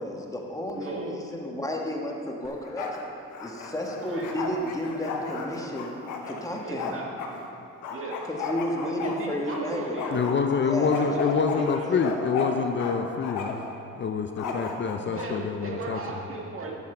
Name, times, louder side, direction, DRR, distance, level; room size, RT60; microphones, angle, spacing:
voice 1, 0.0-3.0 3.4-5.9 6.3-7.0 8.3-10.0 10.6-11.1 11.6-12.1 14.4-14.5, equal, 10° left, 0 dB, 1.4 m, -32 dB
voice 2, 0.7-1.2 4.0-4.3 6.6-7.4 7.9-8.3 8.8-10.3 10.8-12.1 15.0-16.7, right 3 dB, 45° right, -1 dB, 1.8 m, -37 dB
Bark, 2.5-3.0 3.3-7.3 7.8-9.6 10.0-12.9 13.2-13.7 14.4-15.3, left 5 dB, 85° left, 1.2 m, -34 dB
voice 3, 10.1-13.6 14.0-16.0, left 5 dB, 40° left, 6 dB, 0.5 m, -26 dB
11.5 x 7.5 x 4.4 m, 2.9 s
cardioid pair, 90°, 30 cm